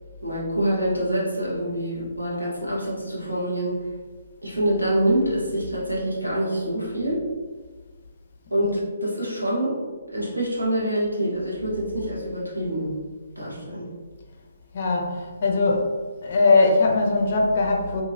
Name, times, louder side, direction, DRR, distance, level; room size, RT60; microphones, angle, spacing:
voice 1, 0.2-3.8 4.4-7.2 8.5-9.8 10.1-12.9 13.4-13.9, right 1 dB, 90° right, -6 dB, 1.1 m, -26 dB
voice 2, 14.7-15.9 16.2-18.0, left 3 dB, 45° left, 1 dB, 0.5 m, -20 dB
2.8 x 2.7 x 2.4 m, 1.4 s
figure-of-eight pair, 135°, 0 cm